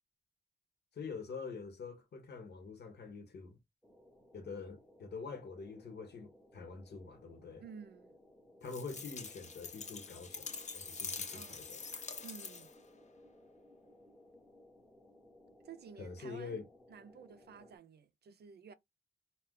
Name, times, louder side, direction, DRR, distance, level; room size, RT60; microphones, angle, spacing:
voice 1, 0.9-3.6 4.3-7.6 8.6-11.8 16.0-16.7, left 4 dB, 75° left, 0.8 m, -46 dB
sound 1, 3.8-17.8, left 1 dB, 5° left, 0.7 m, -61 dB
voice 2, 7.6-8.1 11.3-11.7 12.2-12.7 15.6-16.6 16.9-18.7, right 7 dB, 70° right, 0.4 m, -53 dB
sound 2, 8.6-12.8, left 5 dB, 45° left, 0.5 m, -45 dB
2.4 x 2.1 x 3.6 m
wide cardioid pair, 90°, 17 cm